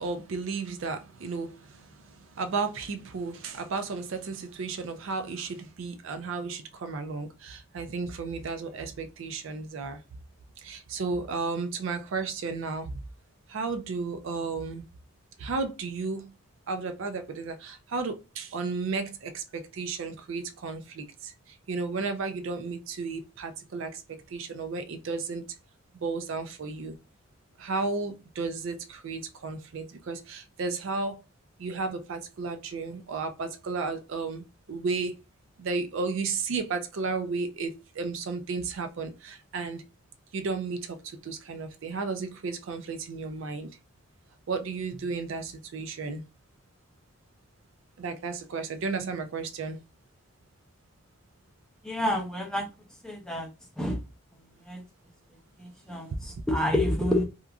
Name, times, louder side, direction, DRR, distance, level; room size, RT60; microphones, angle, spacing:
voice 1, 0.0-10.0 10.6-13.0 13.5-14.8 15.4-16.3 16.7-25.5 26.0-27.0 27.6-31.2 31.6-35.2 35.6-39.8 40.3-43.7 44.5-46.2 48.0-49.8, right 4 dB, 65° right, 0.4 m, -33 dB
voice 2, 51.8-52.7 53.0-53.5 53.8-54.0 54.7-54.8 55.6-57.2, left 1 dB, 5° left, 0.5 m, -28 dB
2.9 x 2.3 x 2.3 m
head